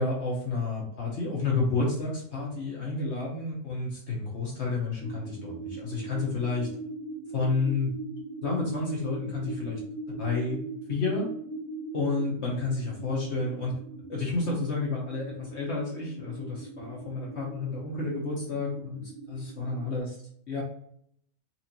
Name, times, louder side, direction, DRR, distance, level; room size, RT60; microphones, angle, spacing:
voice 1, 0.0-6.7 7.3-7.9 8.4-9.8 10.2-10.6 10.9-11.3 11.9-13.7 14.1-20.1 20.5-20.6, left 3 dB, 55° left, -3 dB, 1.2 m, -30 dB
sound 1, 5.0-20.0, right 3 dB, 20° left, 0.4 m, -40 dB
4.3 x 2.6 x 2.8 m, 0.66 s
omnidirectional pair, 1.5 m